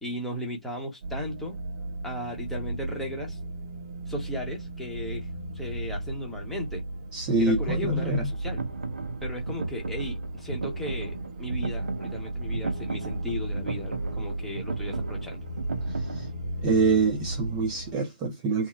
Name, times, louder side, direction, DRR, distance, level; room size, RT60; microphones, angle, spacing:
voice 1, 0.0-1.6 2.0-3.4 4.1-5.3 5.5-6.8 7.4-8.6 9.2-15.5, equal, 5° left, 0.9 m, -35 dB
sound 1, 1.0-17.9, right 1 dB, 35° right, 0.9 m, -35 dB
voice 2, 7.1-8.3 16.1-16.3 16.6-18.7, right 3 dB, 15° right, 0.5 m, -25 dB
sound 2, 8.2-16.3, right 3 dB, 85° right, 1.0 m, -36 dB
3.7 x 2.1 x 4.2 m
hypercardioid pair, 165°, 5 cm